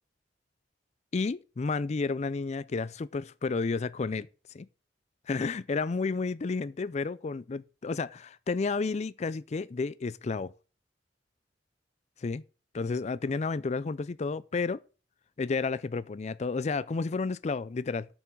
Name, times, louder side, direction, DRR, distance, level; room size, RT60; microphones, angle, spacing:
voice 1, 1.1-4.3 4.5-4.7 5.3-10.5 12.2-12.4 12.7-14.8 15.4-18.1, left 4 dB, 40° left, 0.4 m, -31 dB
7.1 x 6.9 x 7.6 m
head